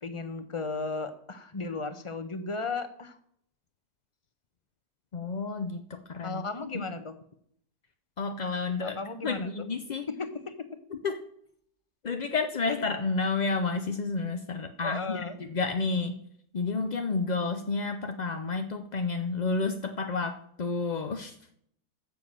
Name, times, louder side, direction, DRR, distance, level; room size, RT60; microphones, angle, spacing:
voice 1, 0.0-3.2 6.2-7.1 8.8-9.5 10.1-10.5 14.8-15.4, left 3 dB, 25° left, 10 dB, 0.9 m, -35 dB
voice 2, 5.1-6.5 6.7-6.8 8.2-10.1 10.9-11.3 12.0-16.2 16.5-21.4, left 4 dB, 50° left, 7 dB, 0.5 m, -30 dB
13.0 x 7.2 x 7.5 m, 0.68 s
omnidirectional pair, 1.7 m